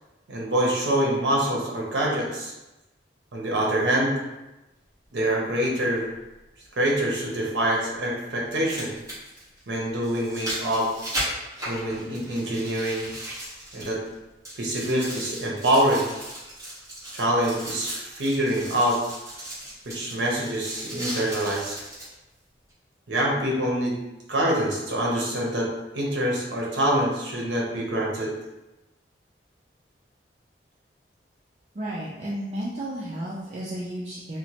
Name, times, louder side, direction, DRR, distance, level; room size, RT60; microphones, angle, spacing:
voice 1, 0.3-2.5 3.3-4.1 5.1-6.1 6.8-8.9 9.7-10.9 11.7-13.0 13.7-14.0 14.6-16.1 17.0-19.0 19.9-21.8 23.1-24.0 24.3-25.7 25.9-28.3, right 1 dB, 85° right, -2 dB, 0.6 m, -25 dB
sound 1, 8.4-14.1 14.4-22.1 22.7-22.8, right 1 dB, 15° right, 1.3 m, -36 dB
voice 2, 31.7-34.4, right 1 dB, 35° right, -6 dB, 0.4 m, -33 dB
2.9 x 2.1 x 2.8 m, 1.0 s
head